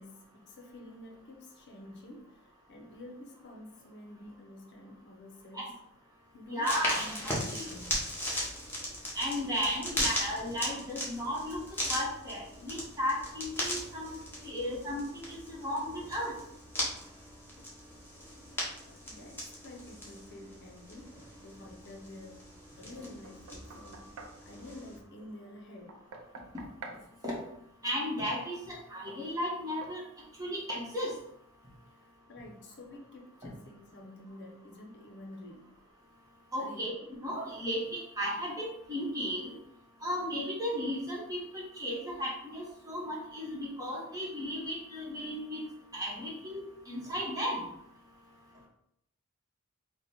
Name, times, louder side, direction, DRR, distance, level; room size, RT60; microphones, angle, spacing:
voice 1, 0.0-2.3 2.7-5.8 6.3-8.2 18.8-22.4 22.8-26.0 32.3-35.7 36.6-36.9, left 1 dB, 55° left, 1 dB, 0.7 m, -49 dB
voice 2, 6.5-7.1 7.5-7.7 9.1-11.6 11.9-14.1 14.4-16.3 27.2-27.3 27.8-30.0 30.4-31.1 36.5-36.9 37.2-39.5 40.0-45.6 45.9-47.7, equal, 15° right, -5 dB, 1.1 m, -35 dB
sound 1, 6.6-25.0, equal, 10° left, 0.9 m, -38 dB
Knock, 23.2-24.4 25.9-27.1 29.1-29.2 29.8-30.0 30.7-30.9, right 3 dB, 80° right, 0.5 m, -47 dB
4.0 x 2.2 x 4.2 m, 0.76 s
head